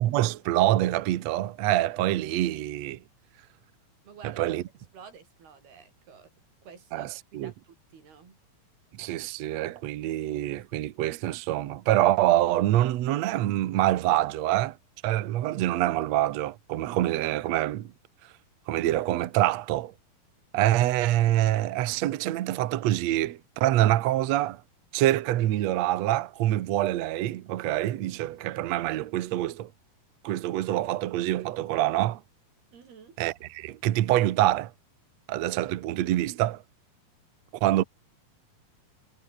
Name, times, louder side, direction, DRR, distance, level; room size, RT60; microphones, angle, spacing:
voice 1, 0.0-3.0 4.2-4.6 6.9-7.5 8.9-14.8 15.0-17.9 18.7-19.9 20.5-24.6 24.9-29.7 30.2-32.2 33.2-34.7 35.3-36.6 37.5-37.8, right 14 dB, 70° right, 1.7 m, -25 dB
voice 2, 4.0-4.4 4.9-6.3 6.6-8.4 32.7-33.2, right 6 dB, 85° right, 6.3 m, -50 dB
omnidirectional pair, 4.4 m